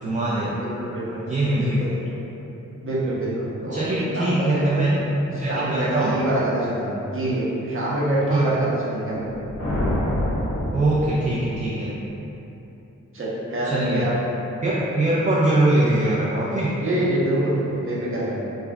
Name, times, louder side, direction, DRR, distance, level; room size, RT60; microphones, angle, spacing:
voice 1, 0.0-0.6 1.3-1.8 3.7-5.0 5.3-6.2 8.3-8.5 10.7-12.0 13.6-14.1 14.6-16.8, right 1 dB, 25° right, -6 dB, 0.4 m, -22 dB
voice 2, 0.6-1.2 1.6-2.3 2.8-4.9 5.3-9.4 13.1-14.2 16.8-18.4, right 1 dB, 40° right, -6 dB, 0.8 m, -26 dB
sound 1, 9.2-11.7, left 1 dB, 45° left, 1.0 m, -26 dB
3.4 x 2.4 x 2.3 m, 3.0 s
cardioid pair, 40°, 33 cm